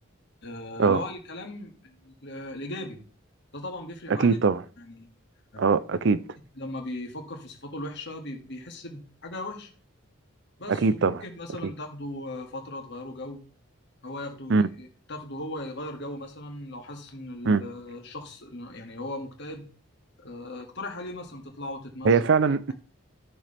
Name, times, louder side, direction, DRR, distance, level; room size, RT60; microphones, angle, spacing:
voice 1, 0.4-3.0 3.5-4.4 4.8-5.1 5.5-5.7 6.6-9.7 10.6-13.4 14.0-19.7 20.2-22.2, left 1 dB, 60° left, 2.1 m, -38 dB
voice 2, 4.2-4.6 5.6-6.2 10.7-11.1 14.5-14.7 17.4-17.6 22.0-22.7, right 4 dB, 60° right, 0.5 m, -21 dB
13.0 x 6.6 x 3.4 m
head